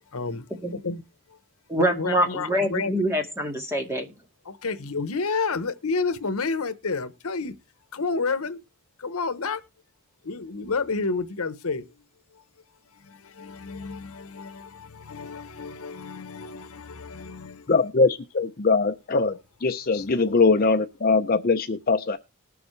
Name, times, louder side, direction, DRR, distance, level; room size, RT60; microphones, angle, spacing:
voice 1, 0.1-1.0 1.9-2.9 4.4-7.5 7.9-8.6 9.0-9.6 10.2-11.8 13.0-17.9 19.9-20.1, left 4 dB, 80° left, 1.0 m, -30 dB
voice 2, 1.7-4.1, equal, 10° right, 1.9 m, -25 dB
voice 3, 17.7-19.3 19.6-22.2, left 4 dB, 40° left, 0.6 m, -21 dB
20.0 x 7.0 x 3.2 m
head